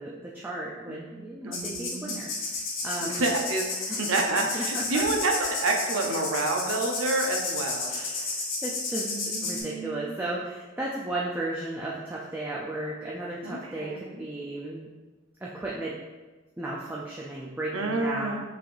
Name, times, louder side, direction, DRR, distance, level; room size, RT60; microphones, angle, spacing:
voice 1, 0.0-3.3 3.9-4.0 4.5-5.0 7.9-14.9 15.4-16.0 16.6-18.3, right 2 dB, 10° right, -5 dB, 0.3 m, -35 dB
voice 2, 0.9-2.2 3.0-3.7 4.0-8.0 9.1-10.1 13.4-14.2 17.7-18.3, right 2 dB, 85° right, 2 dB, 0.7 m, -29 dB
sound 1, 1.5-9.6, left 3 dB, 75° left, 1.1 m, -32 dB
5.7 x 3.3 x 2.6 m, 1.2 s
head